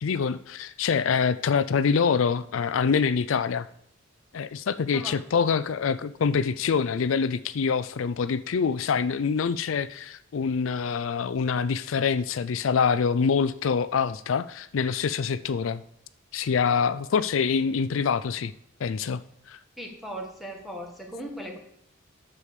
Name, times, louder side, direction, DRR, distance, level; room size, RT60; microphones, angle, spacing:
voice 1, 0.0-3.7 4.3-15.8 16.3-18.5 18.8-19.2 19.5-19.6, left 6 dB, 80° left, 13 dB, 0.4 m, -25 dB
voice 2, 19.8-21.6, right 1 dB, ahead, 1 dB, 1.8 m, -38 dB
9.8 x 6.9 x 4.8 m, 0.73 s
head